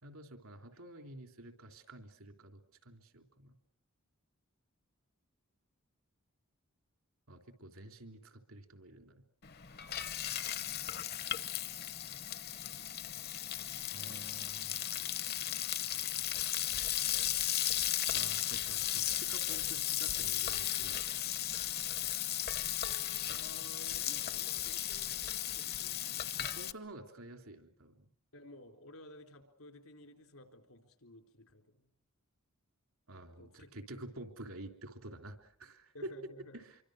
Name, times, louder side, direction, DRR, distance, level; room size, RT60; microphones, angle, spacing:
voice 1, 0.0-3.5 7.3-9.2 13.9-14.9 18.1-21.2 26.4-28.0 33.1-35.9 36.6-36.8, right 1 dB, 80° right, 5 dB, 3.3 m, -50 dB
Frying (food), 9.4-26.7, left 12 dB, 45° left, 0.9 m, -36 dB
voice 2, 23.3-26.3 28.3-31.9 33.4-33.7 35.9-36.6, left 1 dB, 80° left, 5 dB, 3.8 m, -55 dB
26.5 x 24.0 x 6.5 m, 0.62 s
head